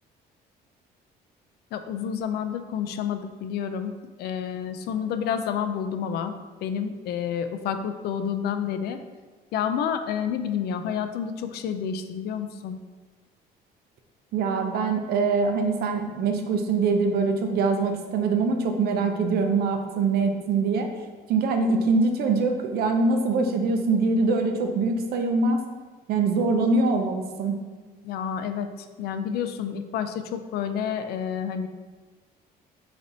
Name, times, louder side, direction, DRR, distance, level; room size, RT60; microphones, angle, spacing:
voice 1, 1.7-3.9 4.2-6.3 6.6-9.0 9.5-12.8 28.0-28.7 29.0-31.7, left 8 dB, 70° left, 9 dB, 0.4 m, -29 dB
voice 2, 14.3-20.9 21.3-25.6 26.1-27.6, right 4 dB, 65° right, 5 dB, 0.6 m, -23 dB
4.0 x 3.3 x 3.9 m, 1.4 s
cardioid pair, 110°, 17 cm